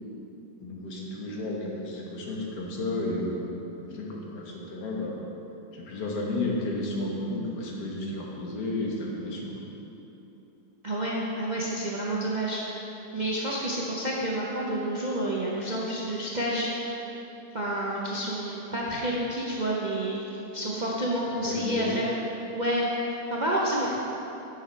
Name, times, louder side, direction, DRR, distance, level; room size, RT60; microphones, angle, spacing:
voice 1, 0.6-3.5 3.9-5.3 5.7-9.6 21.4-22.1, left 2 dB, 75° left, -2 dB, 1.7 m, -32 dB
voice 2, 10.8-12.6 13.1-17.0 17.5-20.2 20.5-22.2 22.5-23.9, right 1 dB, 45° right, -5 dB, 0.6 m, -29 dB
8.0 x 6.7 x 4.5 m, 3.0 s
omnidirectional pair, 1.8 m